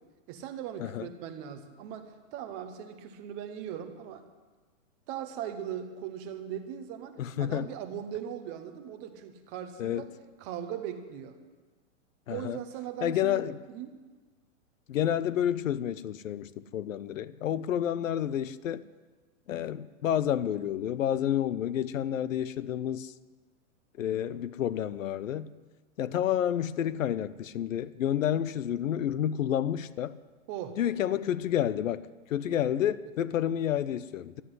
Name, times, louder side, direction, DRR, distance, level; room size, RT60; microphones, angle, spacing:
voice 1, 0.3-4.2 5.1-10.1 10.4-11.4 12.3-13.4 13.7-14.0 30.5-30.8, right 10 dB, 15° right, 0.7 m, -39 dB
voice 2, 7.2-7.7 9.8-10.1 12.3-12.6 13.0-13.6 14.9-18.8 19.5-23.1 24.0-25.5 26.0-30.1 30.8-34.4, left 10 dB, 70° left, 0.8 m, -30 dB
12.5 x 9.7 x 9.6 m
hypercardioid pair, 165°, 41 cm